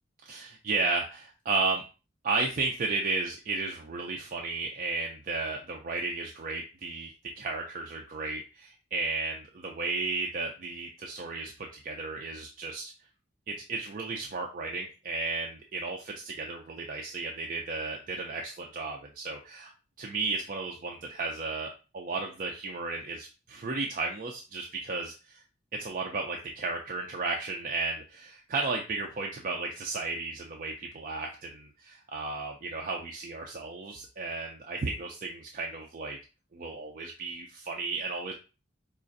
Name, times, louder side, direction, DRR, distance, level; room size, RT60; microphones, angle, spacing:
voice 1, 0.3-1.8 2.2-7.1 7.4-12.9 13.5-19.7 20.0-25.4 25.7-36.2 36.5-38.3, right 3 dB, 45° right, 1 dB, 0.4 m, -34 dB
4.9 x 2.4 x 2.5 m, 0.33 s
head